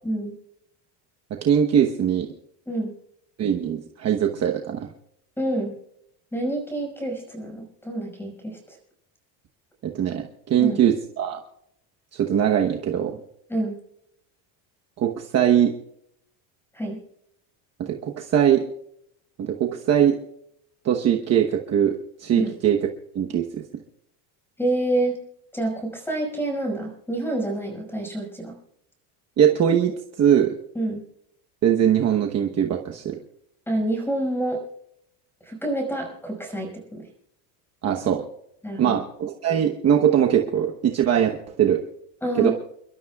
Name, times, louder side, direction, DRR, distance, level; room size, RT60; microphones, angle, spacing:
voice 1, 0.0-0.3 2.7-2.9 5.4-5.8 6.3-8.8 10.6-10.8 13.5-13.8 16.7-17.0 22.4-22.5 24.6-25.2 25.5-28.5 30.8-31.0 33.7-34.6 35.4-37.1 38.6-39.0 42.2-42.5, right 1 dB, 5° left, 2 dB, 5.4 m, -27 dB
voice 2, 1.3-2.3 3.4-4.9 9.8-11.4 12.1-13.2 15.0-15.7 17.8-18.6 19.4-20.2 20.8-22.8 23.1-23.8 29.4-30.6 31.6-33.2 37.8-38.3 38.8-41.8 42.3-42.5, right 9 dB, 35° right, 2 dB, 1.1 m, -21 dB
29.5 x 12.5 x 2.4 m, 0.74 s
cardioid pair, 145°, 45 cm